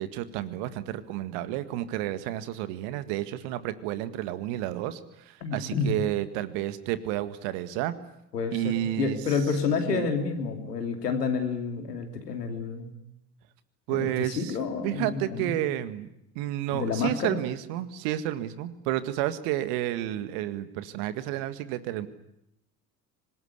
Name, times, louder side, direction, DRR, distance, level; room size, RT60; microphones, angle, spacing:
voice 1, 0.0-7.9 8.5-9.2 9.9-10.1 13.9-14.6 14.8-22.1, right 13 dB, 60° right, 12 dB, 1.9 m, -31 dB
voice 2, 5.4-5.9 8.3-12.9 13.9-15.6 16.7-17.4, left 5 dB, 80° left, 6 dB, 2.9 m, -29 dB
25.0 x 20.0 x 9.7 m, 0.83 s
figure-of-eight pair, 60°, 47 cm